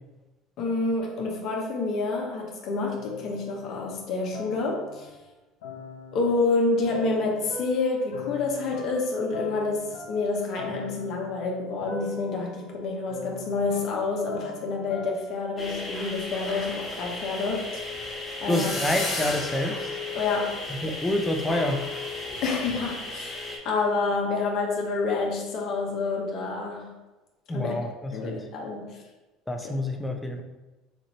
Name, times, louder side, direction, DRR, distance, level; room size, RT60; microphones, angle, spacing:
voice 1, 0.6-5.1 6.1-17.8 18.4-18.7 20.1-20.6 22.4-26.9 27.5-27.7 28.1-29.0 29.6-29.7, left 3 dB, 55° left, 0 dB, 0.8 m, -28 dB
sound 1, 3.0-5.2 5.6-15.4, left 4 dB, 80° left, 0.5 m, -41 dB
sound 2, 15.6-23.6, left 2 dB, 25° left, 1.4 m, -34 dB
voice 2, 18.5-19.9 20.7-21.9 27.5-28.4 29.5-30.4, left 1 dB, 10° left, 4 dB, 0.6 m, -28 dB
4.4 x 2.5 x 3.0 m, 1.1 s
hypercardioid pair, 80°, 0 cm